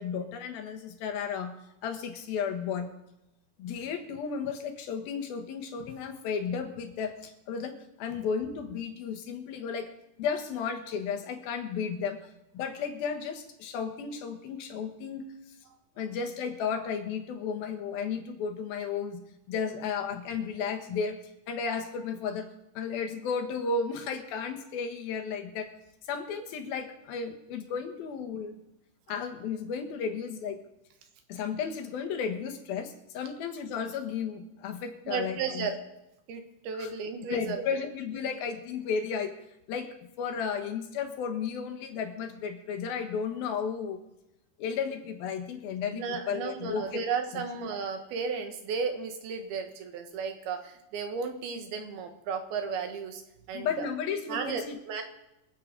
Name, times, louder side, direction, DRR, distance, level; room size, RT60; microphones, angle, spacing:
voice 1, 0.0-1.5 1.8-2.9 3.6-9.9 10.2-12.2 12.5-15.3 16.0-19.2 19.5-21.2 21.5-22.5 22.7-25.7 26.1-28.6 29.1-30.6 31.3-35.7 36.8-36.9 37.3-39.3 39.7-39.9 40.2-44.0 44.6-47.4 53.5-54.8, left 6 dB, 75° left, 4 dB, 3.3 m, -33 dB
voice 2, 35.1-35.8 36.3-37.6 45.9-53.2 53.5-53.9 54.3-55.0, right 5 dB, 85° right, 5 dB, 3.5 m, -34 dB
25.0 x 8.6 x 5.2 m, 0.89 s
omnidirectional pair, 4.3 m